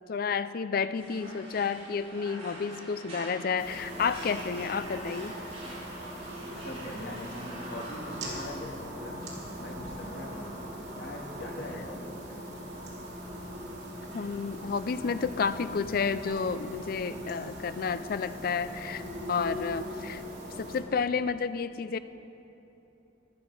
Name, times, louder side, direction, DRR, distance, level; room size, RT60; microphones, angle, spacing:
voice 1, 0.1-5.4 14.1-19.0 19.3-20.2 20.6-22.0, left 5 dB, 55° left, 13 dB, 0.4 m, -31 dB
sound 1, 0.9-8.2, right 1 dB, 35° right, 3.7 m, -45 dB
sound 2, 3.6-20.8, equal, 65° right, 2.7 m, -40 dB
voice 2, 6.4-10.6 10.9-12.5, left 1 dB, 75° left, -1 dB, 2.1 m, -42 dB
14.0 x 12.0 x 4.9 m, 3.0 s
head